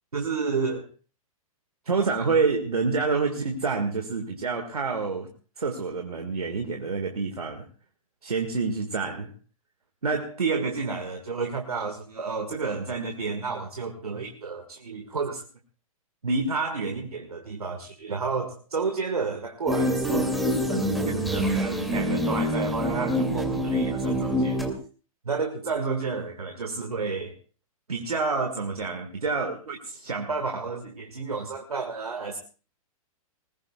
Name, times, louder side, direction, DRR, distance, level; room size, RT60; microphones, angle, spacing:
voice 1, 0.1-0.9 1.9-5.3 5.6-7.7 8.2-9.3 10.0-15.4 16.2-20.4 20.7-24.7 25.3-27.4 27.9-32.4, right 4 dB, 90° right, 4 dB, 1.9 m, -29 dB
sound 1, 19.7-24.7, equal, ahead, 2.5 m, -26 dB
20.5 x 19.5 x 2.4 m, 0.36 s
hypercardioid pair, 115°, 19 cm